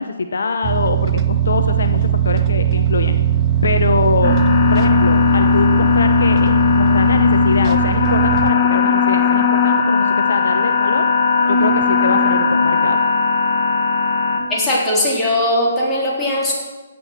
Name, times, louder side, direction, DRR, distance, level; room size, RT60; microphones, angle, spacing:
voice 1, 0.0-3.2 3.6-4.4 4.7-11.1 11.5-13.0, left 4 dB, 65° left, 8 dB, 0.9 m, -23 dB
sound 1, 0.6-8.5, right 9 dB, 25° right, 0.4 m, -19 dB
sound 2, 4.2-14.4, left 5 dB, 40° left, 1.9 m, -17 dB
voice 2, 14.5-16.5, left 1 dB, 10° left, -5 dB, 3.7 m, -19 dB
15.5 x 8.6 x 6.2 m, 1.4 s
figure-of-eight pair, 135°, 0 cm